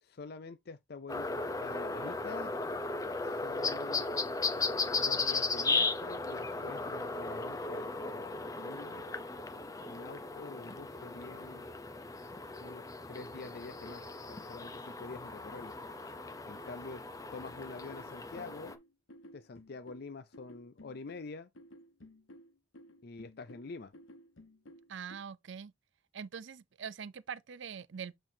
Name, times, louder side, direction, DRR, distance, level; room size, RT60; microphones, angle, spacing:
voice 1, 0.0-2.5 3.2-4.1 5.0-9.0 9.8-11.6 12.6-15.7 16.5-17.0 17.3-18.7 19.3-21.5 23.0-23.9, left 3 dB, 55° left, 0.5 m, -47 dB
sound 1, 1.1-18.7, left 3 dB, 20° left, 0.7 m, -36 dB
sound 2, 17.9-25.2, left 1 dB, 90° left, 1.1 m, -55 dB
voice 2, 24.9-25.7 26.1-28.1, right 7 dB, 65° right, 0.5 m, -43 dB
7.8 x 4.4 x 2.7 m
head